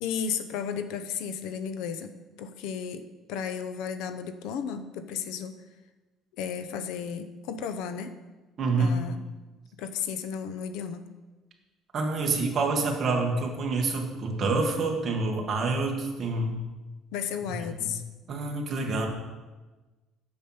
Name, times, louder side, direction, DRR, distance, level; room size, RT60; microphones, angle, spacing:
voice 1, 0.0-5.6 6.4-8.1 8.8-9.2 9.8-11.1 17.1-18.0, left 7 dB, 80° left, 10 dB, 0.7 m, -34 dB
voice 2, 8.6-8.9 11.9-16.6 17.4-17.9 18.3-19.1, right 3 dB, 30° right, 1 dB, 1.4 m, -27 dB
8.6 x 7.1 x 5.6 m, 1.2 s
cardioid pair, 180°, 0 cm